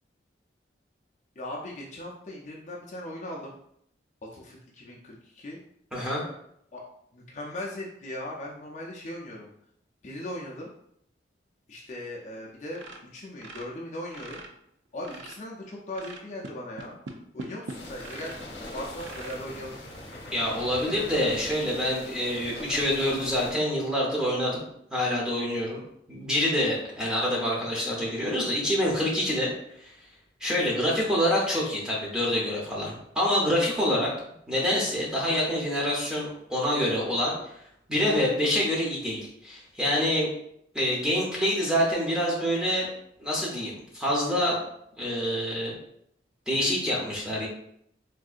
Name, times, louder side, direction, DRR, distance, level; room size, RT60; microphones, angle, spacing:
voice 1, 1.4-3.5 4.3-5.6 6.7-6.8 7.1-9.5 10.0-10.7 11.7-12.8 13.1-14.4 14.9-17.0 17.3-18.3 18.7-19.8, left 1 dB, 40° left, -3 dB, 0.4 m, -38 dB
voice 2, 5.9-6.2 20.3-24.6 24.9-25.8 26.1-29.5 29.8-29.9 30.4-34.1 34.5-37.6 37.9-40.3 40.7-42.9 43.2-44.6 45.0-45.7 46.5-47.5, equal, 5° right, -4 dB, 0.7 m, -26 dB
sound 1, 12.7-14.5 14.9-15.5 15.9-18.5 19.0-19.4 20.0-20.1 20.5-20.6 21.1-21.2, right 3 dB, 80° right, 0.4 m, -42 dB
sound 2, 17.7-23.5, left 1 dB, 80° left, 0.8 m, -41 dB
3.6 x 2.6 x 2.4 m, 0.72 s
head